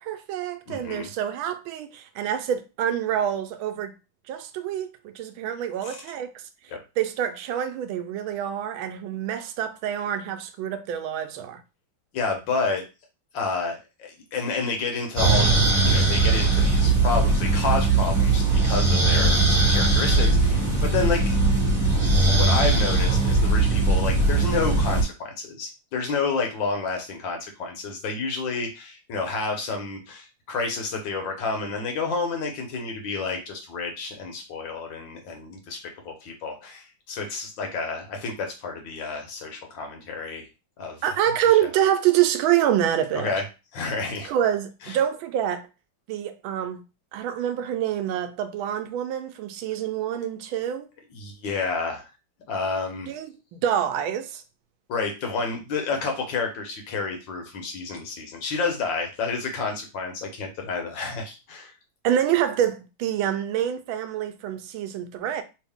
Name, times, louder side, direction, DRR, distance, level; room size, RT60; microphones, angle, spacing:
voice 1, 0.0-3.9 4.3-6.4 7.0-11.6 41.0-43.3 44.2-45.7 46.1-46.8 47.1-50.9 53.1-54.4 62.0-65.4, right 10 dB, 90° right, 1.4 m, -26 dB
voice 2, 0.7-1.1 5.8-6.0 6.7-6.8 12.1-12.8 13.3-15.6 15.8-19.4 19.7-21.2 22.3-35.8 36.0-40.5 40.8-41.0 43.1-43.4 43.7-44.3 44.8-45.0 51.1-52.0 52.5-53.1 54.9-61.7, left 4 dB, 75° left, 1.7 m, -30 dB
sound 1, 15.2-25.0, right 3 dB, 20° right, 1.6 m, -20 dB
3.6 x 2.7 x 3.5 m
omnidirectional pair, 2.1 m